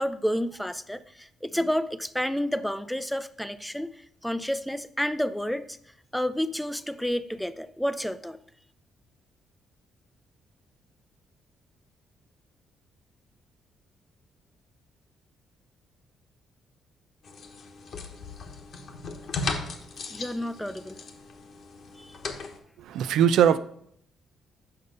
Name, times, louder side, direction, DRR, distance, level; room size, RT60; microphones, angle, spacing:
voice 1, 0.0-5.8 6.1-8.4 20.1-21.0 22.0-22.2, equal, 5° left, 0.4 m, -30 dB
sound 1, 17.2-22.6, left 3 dB, 60° left, 1.1 m, -37 dB
voice 2, 22.8-23.6, right 9 dB, 80° right, 0.4 m, -21 dB
6.9 x 5.4 x 5.2 m
cardioid pair, 90°, 0 cm